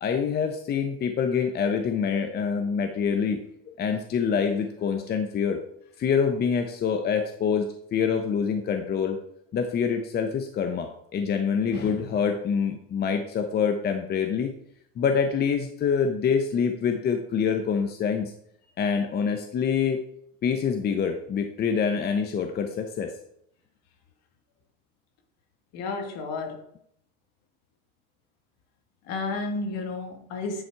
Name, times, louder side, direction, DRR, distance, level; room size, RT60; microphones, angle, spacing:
voice 1, 0.0-3.4 3.7-5.6 6.0-9.2 9.5-14.5 15.0-18.3 18.8-20.0 20.4-23.1, left 6 dB, 35° left, 5 dB, 0.8 m, -26 dB
voice 2, 25.7-26.6 29.1-30.6, left 3 dB, 65° left, 4 dB, 1.8 m, -31 dB
9.7 x 4.1 x 4.6 m, 0.71 s
supercardioid pair, 120°, 29 cm